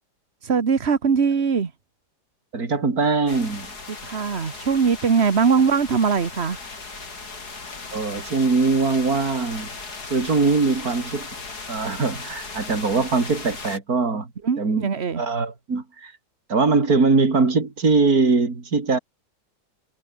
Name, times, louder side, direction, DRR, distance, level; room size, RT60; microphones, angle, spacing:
voice 1, 0.4-1.7 4.0-6.6 14.4-15.2, right 6 dB, 40° right, 1.7 m, -21 dB
voice 2, 2.5-3.7 7.9-9.7 10.1-11.3 11.7-14.3 14.6-14.8 15.2-16.1 16.5-19.0, right 4 dB, 60° right, 4.0 m, -21 dB
sound 1, 3.3-13.8, left 4 dB, 65° left, 4.0 m, -37 dB
omnidirectional pair, 1.8 m